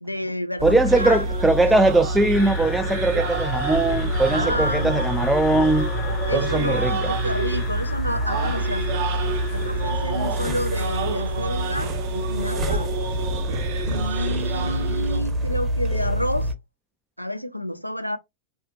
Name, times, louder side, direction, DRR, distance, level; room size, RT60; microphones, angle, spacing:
voice 1, 0.0-1.3 1.7-1.8 4.3-5.1 6.3-9.1 9.5-12.9 13.8-16.6 17.2-18.2, equal, 90° left, 0.4 m, -30 dB
voice 2, 0.6-5.9 6.3-7.1, right 2 dB, 5° right, 0.4 m, -20 dB
sound 1, 0.6-16.5, equal, 25° right, 0.9 m, -27 dB
sound 2, 0.9-15.2, right 5 dB, 50° right, 0.8 m, -31 dB
sound 3, 2.3-11.8, left 5 dB, 35° left, 0.8 m, -37 dB
4.0 x 2.6 x 2.7 m
figure-of-eight pair, 90°, 0 cm